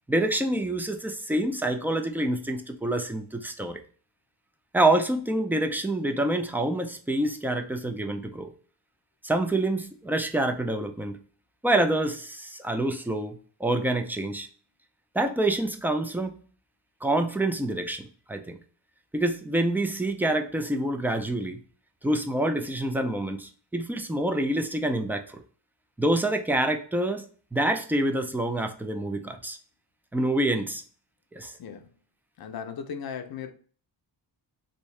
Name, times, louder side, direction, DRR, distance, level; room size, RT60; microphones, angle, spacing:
voice 1, 0.1-3.8 4.7-8.5 9.2-11.2 11.6-14.5 15.1-16.4 17.0-18.6 19.1-21.6 22.0-25.4 26.0-29.6 30.1-30.8 31.3-31.5, right 1 dB, 5° right, 6 dB, 0.3 m, -27 dB
voice 2, 32.4-33.5, left 7 dB, 60° left, 7 dB, 0.6 m, -37 dB
3.3 x 2.7 x 3.2 m, 0.43 s
wide cardioid pair, 110°, 42 cm